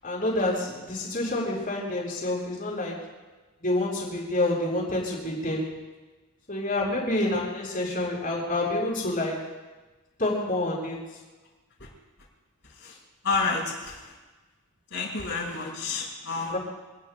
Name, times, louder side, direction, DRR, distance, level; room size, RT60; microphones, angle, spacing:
voice 1, 0.0-3.0 3.6-5.8 6.5-9.4 10.2-11.0 15.4-15.5 16.4-16.6, left 1 dB, 40° left, -3 dB, 7.1 m, -28 dB
voice 2, 13.2-14.0 14.9-16.6, left 4 dB, 55° left, -2 dB, 5.7 m, -29 dB
28.0 x 21.0 x 2.3 m, 1.2 s
head